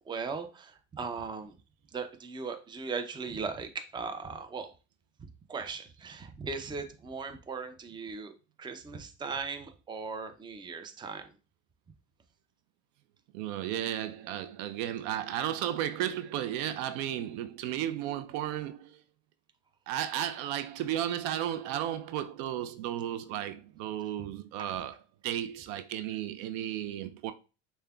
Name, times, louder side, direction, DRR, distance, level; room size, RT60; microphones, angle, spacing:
voice 1, 0.1-1.5 1.9-4.7 5.5-11.3, right 4 dB, 10° right, 0.5 m, -38 dB
voice 2, 13.3-19.0 19.9-25.0 25.2-27.3, right 11 dB, 65° right, 0.5 m, -34 dB
6.4 x 2.2 x 2.3 m
hypercardioid pair, 90°, 37 cm